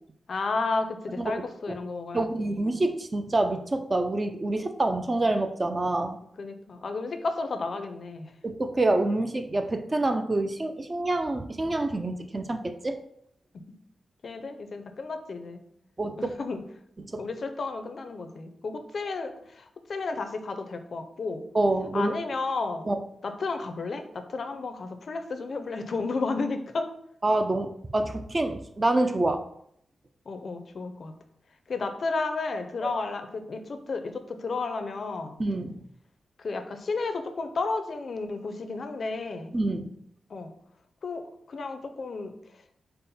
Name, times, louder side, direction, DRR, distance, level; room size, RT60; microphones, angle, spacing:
voice 1, 0.3-2.6 6.4-8.3 13.5-13.6 14.2-15.7 16.2-16.6 17.2-21.4 21.9-22.9 23.2-26.9 30.3-31.1 31.7-35.4 36.4-39.5 40.3-40.5 41.0-41.2 41.5-42.3, left 3 dB, 55° left, 7 dB, 0.5 m, -32 dB
voice 2, 2.1-6.2 8.4-13.0 16.0-16.3 17.0-17.2 21.5-22.1 22.9-23.0 27.2-29.4 35.4-35.8 39.5-39.9, right 2 dB, 30° right, 7 dB, 0.4 m, -27 dB
5.3 x 2.1 x 4.1 m, 0.70 s
wide cardioid pair, 100°, 0 cm